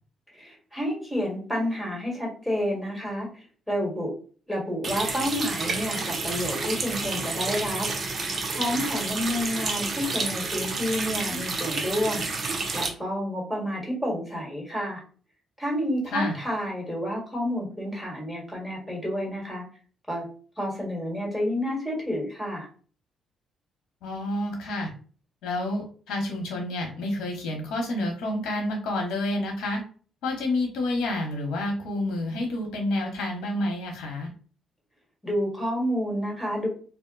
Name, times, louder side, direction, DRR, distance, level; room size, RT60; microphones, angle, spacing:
voice 1, 0.3-3.3 3.7-4.1 4.5-7.9 8.6-12.3 12.7-15.0 15.6-19.6 20.1-20.3 20.6-22.7 35.2-36.7, equal, 5° left, -2 dB, 1.5 m, -29 dB
Water tap faucet, 4.8-12.9, right 3 dB, 45° right, 0.6 m, -30 dB
voice 2, 24.0-24.9 25.4-29.8 30.2-34.3, left 1 dB, 85° left, 2 dB, 0.9 m, -29 dB
2.4 x 2.1 x 3.8 m, 0.41 s
cardioid pair, 90°, 0 cm